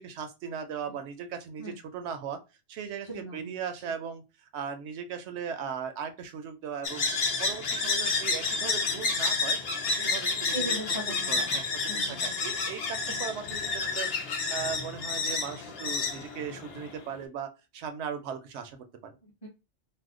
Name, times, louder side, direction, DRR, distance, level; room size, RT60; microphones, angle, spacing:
voice 1, 0.0-2.4 2.7-7.1 7.4-9.6 9.9-10.6 11.3-19.2, right 7 dB, 80° right, 8 dB, 0.9 m, -38 dB
voice 2, 3.1-3.5 3.8-3.9 10.4-11.6 11.9-12.3 13.1-13.2 19.2-19.5, right 1 dB, 30° left, -4 dB, 0.8 m, -39 dB
sound 1, 6.8-17.0, left 4 dB, 65° left, 0.9 m, -30 dB
2.7 x 2.1 x 3.6 m, 0.28 s
omnidirectional pair, 1.2 m